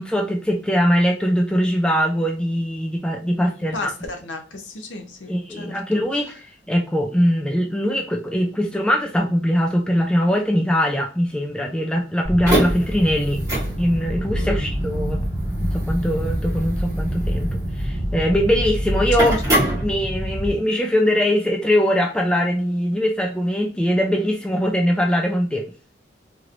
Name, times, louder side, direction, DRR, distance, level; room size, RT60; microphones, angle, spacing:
voice 1, 0.0-3.9 5.3-13.5 13.8-15.2 15.6-17.5 17.7-19.4 19.8-25.7, equal, 5° left, 1 dB, 0.4 m, -21 dB
voice 2, 3.4-6.0 14.3-14.7 19.2-19.7, left 2 dB, 85° left, 4 dB, 0.8 m, -34 dB
sound 1, 12.2-20.5, right 1 dB, 15° right, 1.5 m, -24 dB
3.1 x 3.0 x 2.5 m, 0.34 s
head